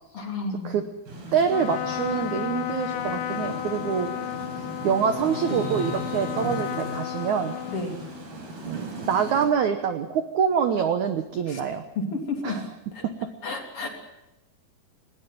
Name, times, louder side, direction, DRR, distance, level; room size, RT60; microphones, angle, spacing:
voice 1, 0.1-0.7 5.5-5.6 7.7-8.0 11.5-11.6 12.0-12.6 13.0-13.1 13.4-13.9, left 3 dB, 35° left, 2 dB, 3.6 m, -31 dB
sound 1, 1.1-9.5, right 1 dB, 60° right, 6.4 m, -37 dB
voice 2, 1.3-4.1 4.8-7.6 8.7-11.8 12.4-12.7, right 7 dB, 90° right, 8 dB, 1.7 m, -25 dB
Trumpet, 1.4-8.3, left 12 dB, 80° left, 1.9 m, -33 dB
20.5 x 17.0 x 9.4 m, 0.88 s
omnidirectional pair, 5.1 m